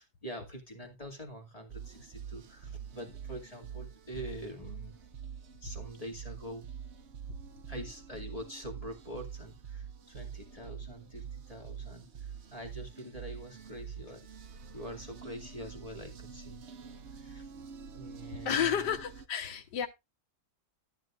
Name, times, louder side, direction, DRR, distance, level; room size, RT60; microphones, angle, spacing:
voice 1, 0.0-5.0 5.6-6.7 7.7-14.3 14.7-16.6 17.1-17.5 17.9-18.8, equal, 20° left, 2.3 m, -45 dB
sound 1, 1.7-19.3, right 7 dB, 50° right, 0.8 m, -46 dB
voice 2, 18.4-19.9, left 8 dB, 75° left, 1.8 m, -31 dB
12.5 x 10.5 x 2.5 m
omnidirectional pair, 1.9 m